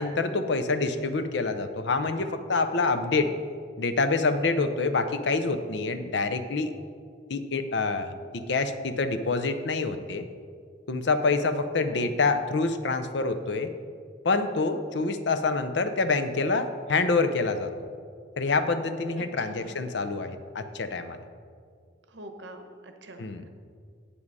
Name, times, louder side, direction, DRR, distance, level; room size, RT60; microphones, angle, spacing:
voice 1, 0.0-3.3 3.8-6.7 7.3-10.3 10.9-13.7 14.2-17.7 18.4-21.2 23.2-23.4, left 3 dB, 65° left, 9 dB, 0.6 m, -26 dB
voice 2, 11.8-12.2 19.2-19.8 22.1-23.5, right 1 dB, 65° right, 6 dB, 0.9 m, -45 dB
8.6 x 7.4 x 4.7 m, 2.2 s
head